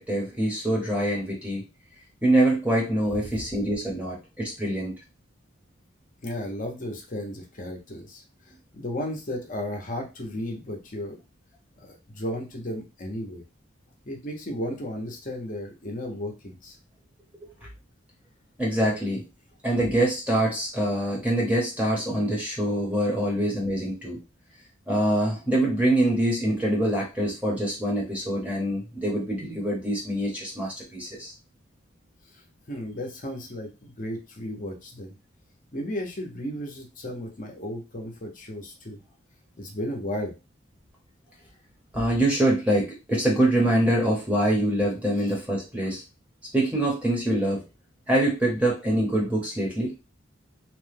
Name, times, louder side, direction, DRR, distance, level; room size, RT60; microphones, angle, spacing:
voice 1, 0.0-1.6 2.2-4.9 18.6-19.2 19.6-24.2 24.9-31.3 41.9-46.0 46.5-47.6 48.1-49.9, right 1 dB, 5° right, -3 dB, 0.8 m, -24 dB
voice 2, 6.2-11.2 11.8-13.4 14.1-16.8 32.7-35.1 35.7-39.0 39.6-40.3 45.2-45.3, left 1 dB, 40° left, 1 dB, 0.7 m, -34 dB
2.9 x 2.2 x 3.3 m, 0.27 s
head